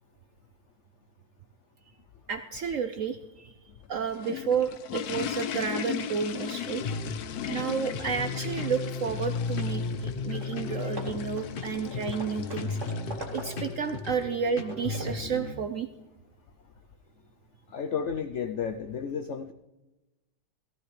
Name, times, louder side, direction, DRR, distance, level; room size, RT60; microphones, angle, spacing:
voice 1, 2.3-3.5 3.9-6.8 7.5-12.8 13.3-15.9, right 6 dB, 70° right, 9 dB, 0.7 m, -31 dB
sound 1, 3.8-14.1, left 9 dB, 65° left, 1.1 m, -38 dB
sound 2, 6.6-15.5, left 4 dB, 40° left, 0.8 m, -35 dB
Hammer / Wood, 10.0-10.1 10.4-10.6 11.0-13.8 14.3-15.3, right 1 dB, 40° right, 2.2 m, -43 dB
voice 2, 17.7-19.5, left 7 dB, 80° left, 8 dB, 0.6 m, -32 dB
18.0 x 14.5 x 3.2 m, 1.1 s
omnidirectional pair, 2.0 m